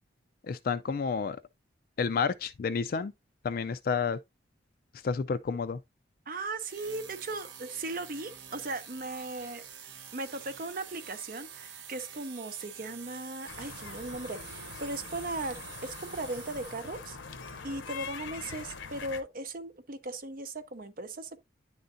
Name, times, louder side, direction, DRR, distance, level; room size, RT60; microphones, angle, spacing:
voice 1, 0.5-1.4 2.0-3.1 3.4-4.2 5.0-5.8, left 5 dB, 50° left, 0.3 m, -30 dB
voice 2, 6.3-9.6 10.1-17.2 17.6-21.4, right 2 dB, 50° right, 0.7 m, -38 dB
sound 1, 6.7-17.2, right 7 dB, 75° right, 1.1 m, -47 dB
sound 2, 13.5-19.2, left 5 dB, 85° left, 0.8 m, -43 dB
10.0 x 3.8 x 2.6 m
head